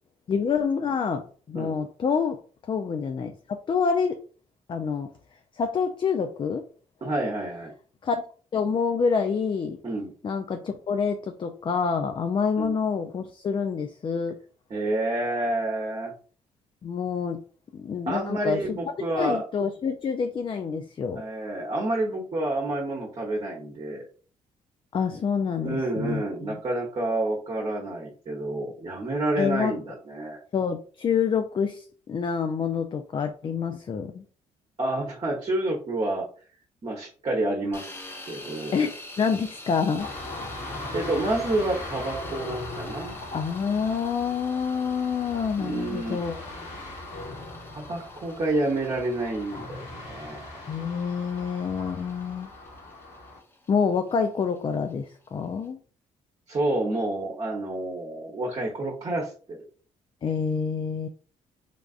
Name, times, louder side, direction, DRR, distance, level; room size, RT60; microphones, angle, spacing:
voice 1, 0.3-4.2 4.7-5.1 5.5-6.6 8.0-8.2 8.5-9.8 10.2-14.4 16.8-17.4 17.7-18.8 19.2-21.2 24.9-26.2 26.5-26.6 29.4-29.8 30.5-34.2 38.7-40.1 43.3-46.4 50.7-52.5 53.7-55.8 60.2-61.1, left 6 dB, 35° left, 6 dB, 0.4 m, -27 dB
voice 2, 7.0-7.7 9.8-10.1 12.6-12.7 14.7-16.1 18.1-19.4 21.2-24.0 25.6-30.4 34.8-36.3 36.8-38.8 40.6-43.2 45.6-46.2 47.7-50.6 56.5-59.6, right 2 dB, 40° right, -1 dB, 0.9 m, -29 dB
sound 1, 37.7-55.7, left 2 dB, 15° left, 0.8 m, -47 dB
sound 2, 40.0-53.4, left 2 dB, 70° left, 1.5 m, -39 dB
3.3 x 2.4 x 2.4 m, 0.41 s
supercardioid pair, 60°, 14 cm